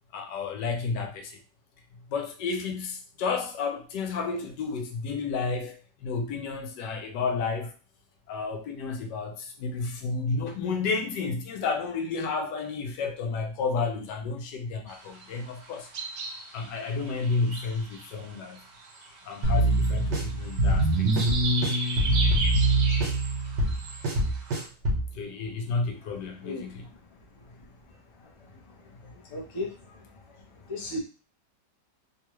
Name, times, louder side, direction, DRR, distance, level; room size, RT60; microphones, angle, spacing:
voice 1, 0.1-1.4 2.1-5.7 6.0-7.7 8.3-15.9 16.5-18.6 19.2-21.1 21.3-21.5 25.1-26.9, left 4 dB, 85° left, 4 dB, 1.3 m, -31 dB
sound 1, 14.9-24.7, right 3 dB, 60° right, 0.9 m, -37 dB
sound 2, 19.4-25.1, right 1 dB, 90° right, 1.6 m, -24 dB
voice 2, 29.3-29.7 30.7-31.0, left 2 dB, 40° left, -1 dB, 0.4 m, -33 dB
3.5 x 2.3 x 3.0 m, 0.35 s
omnidirectional pair, 1.8 m